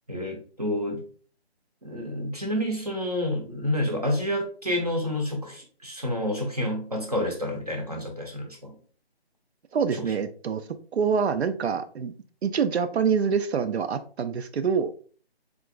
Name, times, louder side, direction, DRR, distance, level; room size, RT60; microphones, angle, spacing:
voice 1, 0.1-1.0 1.8-8.8 10.0-10.1, left 1 dB, 40° right, 2 dB, 0.6 m, -29 dB
voice 2, 9.7-10.6 10.9-12.1 12.4-14.9, right 6 dB, 80° right, 10 dB, 0.5 m, -25 dB
3.6 x 2.9 x 2.2 m, 0.42 s
figure-of-eight pair, 175°, 32 cm